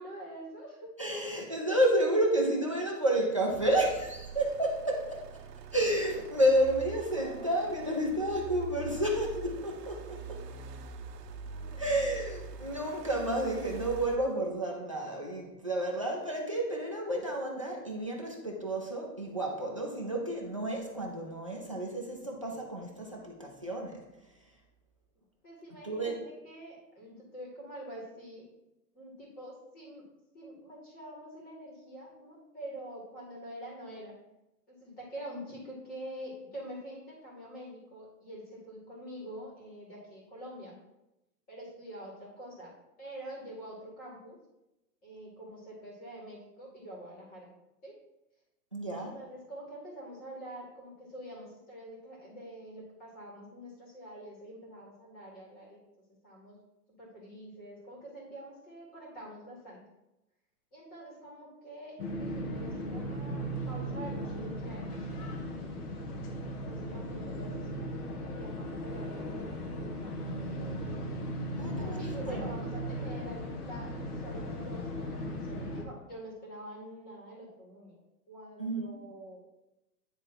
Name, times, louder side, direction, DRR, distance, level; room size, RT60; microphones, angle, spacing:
voice 1, 0.0-1.2 6.4-6.7 7.1-7.6 11.5-12.0 15.7-16.0 23.0-23.2 25.4-28.5 28.9-30.1 30.3-34.2 34.7-40.8 41.5-42.7 43.0-44.4 45.0-47.5 47.8-48.0 49.0-55.8 56.2-56.6 57.0-59.8 60.7-65.1 66.6-67.7 68.3-70.5 71.7-78.0 78.3-79.4, right 1 dB, 15° left, -4 dB, 2.3 m, -46 dB
voice 2, 1.0-5.2 5.7-10.4 11.8-24.0 25.8-26.2 48.7-49.1 71.5-72.5 78.6-79.0, right 1 dB, 25° right, -1 dB, 0.3 m, -30 dB
sound 1, 3.5-14.2, right 6 dB, 75° right, 0.8 m, -44 dB
sound 2, 62.0-75.8, equal, 65° left, 1.5 m, -37 dB
9.7 x 3.5 x 4.4 m, 0.93 s
hypercardioid pair, 155°, 49 cm